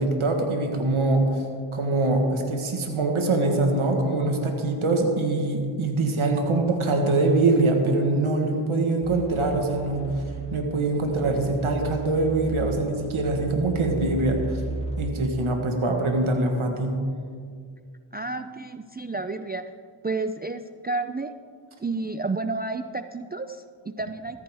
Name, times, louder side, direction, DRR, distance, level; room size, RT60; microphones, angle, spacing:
voice 1, 0.0-1.4 1.7-10.1 10.5-14.6 15.0-17.0, right 2 dB, 80° right, 3 dB, 1.5 m, -23 dB
sound 1, 9.0-15.0, right 1 dB, 15° left, 2.3 m, -35 dB
voice 2, 18.1-19.6 20.0-21.4 21.8-24.4, right 3 dB, 20° right, 9 dB, 0.4 m, -31 dB
15.0 x 13.5 x 3.5 m, 2.1 s
cardioid pair, 50°, 48 cm